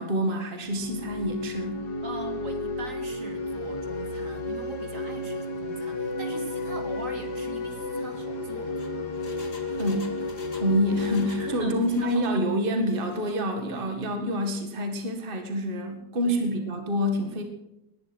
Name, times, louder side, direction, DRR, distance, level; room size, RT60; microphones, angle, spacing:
voice 1, 0.0-1.8 9.8-10.1 10.5-17.4, equal, 30° right, 5 dB, 2.1 m, -27 dB
sound 1, 0.6-13.3, left 2 dB, 75° left, 2.6 m, -33 dB
voice 2, 2.0-8.8 11.4-12.2 13.7-13.8 16.2-16.4, right 3 dB, 50° right, 5 dB, 2.5 m, -41 dB
Engine, 8.7-11.5 11.7-12.4 12.8-13.4 13.7-13.8, left 3 dB, 50° left, 2.3 m, -49 dB
19.0 x 11.5 x 6.3 m, 0.87 s
omnidirectional pair, 1.8 m